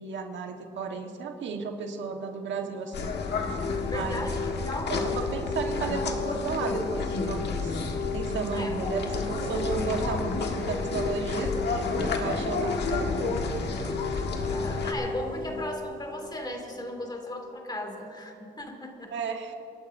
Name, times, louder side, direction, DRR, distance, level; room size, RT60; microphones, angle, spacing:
voice 1, 0.0-3.1 3.9-4.3 4.9-7.8 8.1-13.4 19.1-19.5, right 5 dB, 70° right, 3 dB, 1.5 m, -34 dB
sound 1, 2.5-17.2, left 3 dB, 75° left, 3.3 m, -35 dB
sound 2, 2.9-14.9, left 4 dB, 60° left, 1.7 m, -31 dB
voice 2, 3.8-5.0 8.5-9.1 14.5-19.2, left 1 dB, 20° left, 2 dB, 2.5 m, -37 dB
29.0 x 12.0 x 2.7 m, 3.0 s
cardioid pair, 90°, 20 cm